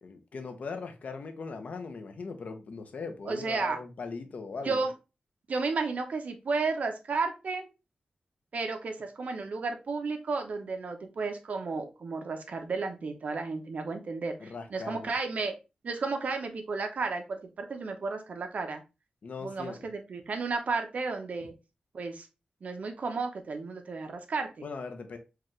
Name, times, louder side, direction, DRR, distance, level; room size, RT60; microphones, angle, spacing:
voice 1, 0.0-4.8 14.4-15.1 19.2-19.8 24.6-25.2, left 4 dB, 65° left, 0.7 m, -39 dB
voice 2, 3.2-3.8 4.6-4.9 5.5-7.7 8.5-15.5 15.8-18.8 19.4-21.5 21.9-22.3 22.6-24.7, right 4 dB, 65° right, 0.8 m, -33 dB
4.7 x 2.4 x 3.1 m
wide cardioid pair, 110°, 3 cm